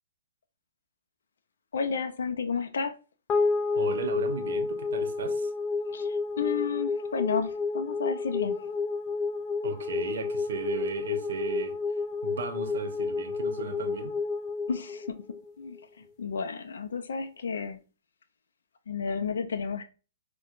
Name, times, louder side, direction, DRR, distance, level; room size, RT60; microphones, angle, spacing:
voice 1, 1.7-3.0 5.9-8.8 14.7-17.8 18.9-19.8, left 5 dB, 85° left, 0.4 m, -32 dB
sound 1, 3.3-15.8, left 4 dB, 20° left, 0.4 m, -30 dB
voice 2, 3.7-5.5 9.6-11.8 12.2-14.2, right 5 dB, 70° right, 0.7 m, -36 dB
4.4 x 2.1 x 2.4 m
hypercardioid pair, 155°, 0 cm